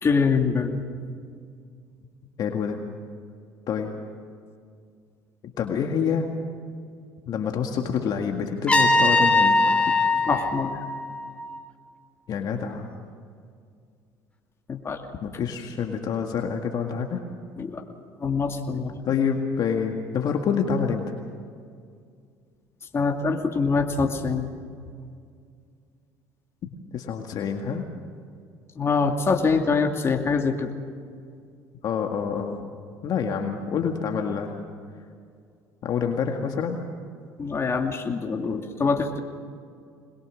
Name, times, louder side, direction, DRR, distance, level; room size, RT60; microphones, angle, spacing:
voice 1, 0.0-0.8 10.3-10.8 14.7-15.0 17.6-17.8 18.2-19.0 22.9-24.5 28.8-30.7 37.4-39.2, left 4 dB, 35° left, 3 dB, 2.6 m, -24 dB
voice 2, 2.4-2.8 3.7-3.9 5.4-6.3 7.3-9.8 12.3-12.9 15.2-17.2 19.0-21.1 26.9-27.8 31.8-32.6 33.0-34.5 35.8-36.8, left 6 dB, 55° left, 3 dB, 2.0 m, -27 dB
Trumpet, 8.7-11.6, left 2 dB, 15° left, 2.9 m, -21 dB
22.5 x 21.5 x 6.4 m, 2.2 s
supercardioid pair, 80°, 8 cm